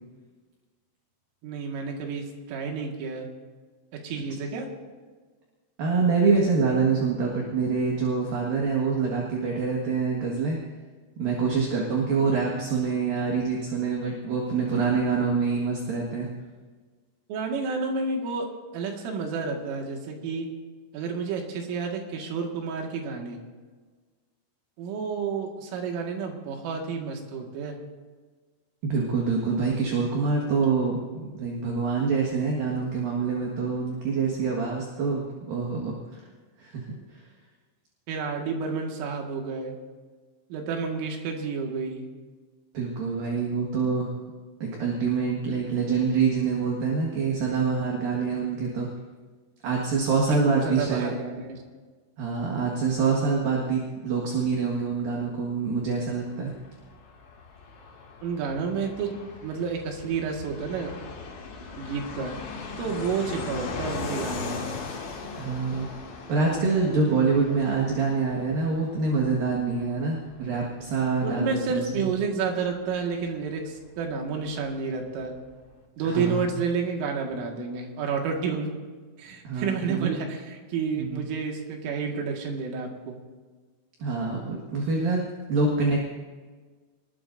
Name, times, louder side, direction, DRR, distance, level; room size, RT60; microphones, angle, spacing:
voice 1, 1.4-3.3 4.0-4.7 17.3-18.4 18.7-20.5 20.9-23.4 24.8-27.8 38.1-39.8 40.5-42.1 50.3-51.6 58.2-59.1 59.4-60.9 61.8-62.3 62.8-64.7 71.2-75.3 76.0-78.7 79.2-83.2, right 5 dB, 85° right, 1 dB, 4.5 m, -30 dB
voice 2, 5.8-10.6 11.2-16.3 28.8-36.2 36.6-36.9 37.1-37.2 42.7-44.1 44.6-48.9 49.6-51.2 52.2-56.5 65.3-65.9 66.3-72.1 76.0-76.6 79.4-80.1 80.9-81.2 84.0-85.2 85.5-86.1, right 4 dB, 55° right, -2 dB, 2.9 m, -26 dB
Fixed-wing aircraft airplane, 56.1-74.5 74.8-74.9 75.0-75.8, left 4 dB, 70° left, 4.4 m, -40 dB
24.5 x 20.0 x 2.7 m, 1.4 s
omnidirectional pair, 5.6 m